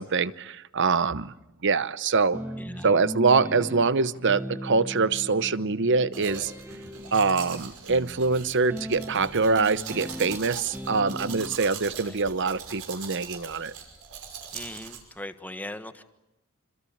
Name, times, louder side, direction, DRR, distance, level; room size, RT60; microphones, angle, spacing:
voice 1, 0.0-1.3 1.6-2.4 2.8-6.5 7.1-13.7, right 4 dB, 55° right, 16 dB, 0.9 m, -24 dB
sound 1, 2.3-11.6, equal, 10° right, 1.1 m, -38 dB
voice 2, 2.6-2.9 7.0-7.1 12.0-12.2 14.5-16.0, left 1 dB, 10° left, 9 dB, 1.3 m, -40 dB
Domestic sounds home sounds, 6.1-15.0, right 6 dB, 85° right, 5.6 m, -41 dB
26.5 x 26.0 x 8.7 m, 0.92 s
head